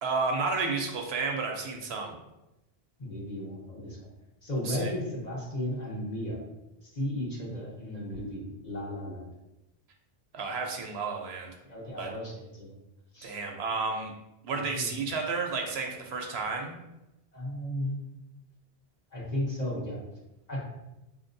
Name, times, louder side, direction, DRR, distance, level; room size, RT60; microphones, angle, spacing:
voice 1, 0.0-2.2 4.6-4.9 10.3-11.5 12.0-12.1 13.2-14.1 14.4-16.8, right 4 dB, 85° right, 2 dB, 0.9 m, -31 dB
voice 2, 3.0-4.1 4.4-6.4 6.8-9.2 11.7-12.7 13.1-13.4 14.5-14.9 17.3-17.9 19.1-20.0 20.5-20.6, left 1 dB, 45° left, -5 dB, 1.1 m, -34 dB
4.8 x 2.9 x 2.6 m, 0.95 s
omnidirectional pair, 1.0 m